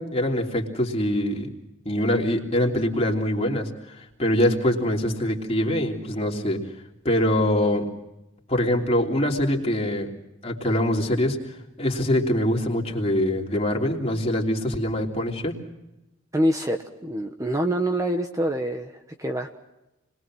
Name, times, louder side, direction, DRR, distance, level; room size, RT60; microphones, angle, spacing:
voice 1, 0.0-1.5 1.8-6.6 7.0-7.9 8.5-10.1 10.4-15.6, left 1 dB, 30° left, 0 dB, 3.2 m, -24 dB
voice 2, 16.3-18.9 19.2-19.5, right 1 dB, 15° right, 4 dB, 1.1 m, -25 dB
30.0 x 21.5 x 6.2 m, 0.95 s
head